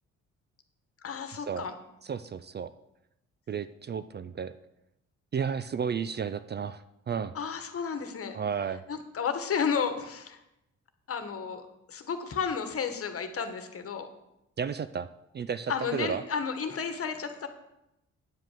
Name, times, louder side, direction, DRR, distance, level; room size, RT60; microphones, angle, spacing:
voice 1, 1.0-1.7 7.3-8.4 8.9-10.4 11.1-14.1 15.7-17.5, left 6 dB, 50° left, 8 dB, 1.3 m, -32 dB
voice 2, 2.0-2.7 3.5-4.6 5.3-7.3 8.3-8.8 14.6-15.1 15.3-16.2, right 7 dB, 35° right, 13 dB, 0.4 m, -32 dB
9.5 x 5.2 x 7.5 m, 0.87 s
cardioid pair, 90°, 30 cm